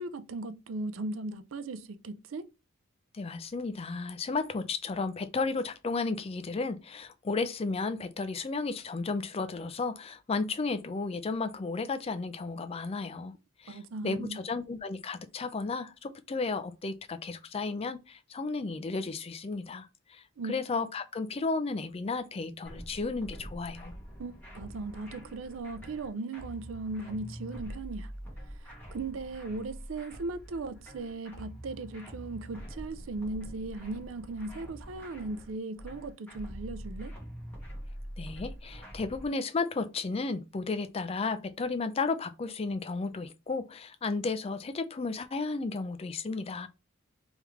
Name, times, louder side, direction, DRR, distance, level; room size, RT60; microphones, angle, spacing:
voice 1, 0.0-2.5 13.7-14.4 20.4-20.5 24.2-28.1 28.6-37.1, right 3 dB, 85° right, 0.5 m, -38 dB
voice 2, 3.1-13.3 13.6-23.9 38.2-46.7, left 3 dB, 30° left, 0.4 m, -33 dB
sound 1, 22.7-39.3, equal, 10° left, 1.6 m, -45 dB
3.5 x 3.4 x 3.1 m
head